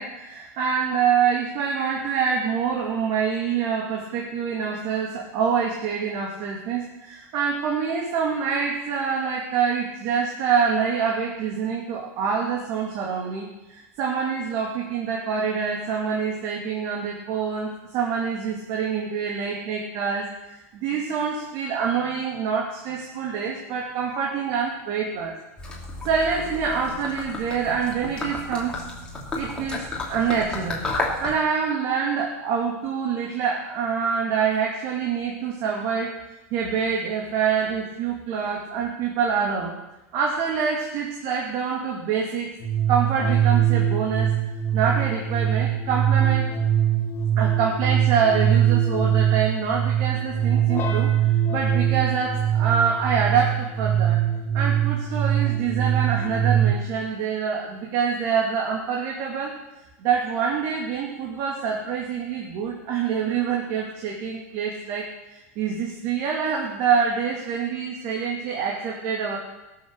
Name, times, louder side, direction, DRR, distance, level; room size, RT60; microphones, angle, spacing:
voice 1, 0.0-25.3 26.0-28.8 29.3-30.8 31.2-36.2 36.5-39.7 40.1-42.5 42.9-44.3 44.7-46.5 47.4-54.2 54.5-59.6 60.0-69.4, right 6 dB, 50° right, -1 dB, 2.3 m, -26 dB
Gurgling / Liquid, 25.6-31.4, left 2 dB, 10° left, 2.8 m, -32 dB
sound 1, 42.6-56.7, right 10 dB, 30° left, 2.4 m, -22 dB
17.0 x 7.2 x 6.4 m, 1.0 s
supercardioid pair, 150°, 8 cm